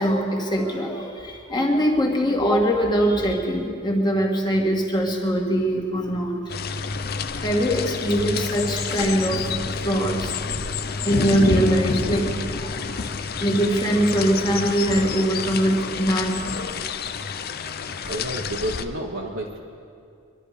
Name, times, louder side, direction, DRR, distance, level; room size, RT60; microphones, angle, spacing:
voice 1, 0.0-6.4 7.4-9.5 9.8-10.3 11.0-12.9 13.4-16.4, equal, 20° left, 0 dB, 1.9 m, -22 dB
sound 1, 6.5-18.8, left 4 dB, 45° left, 0.6 m, -28 dB
voice 2, 18.1-19.6, right 1 dB, 60° right, -2 dB, 1.3 m, -30 dB
23.5 x 12.0 x 5.0 m, 2.4 s
head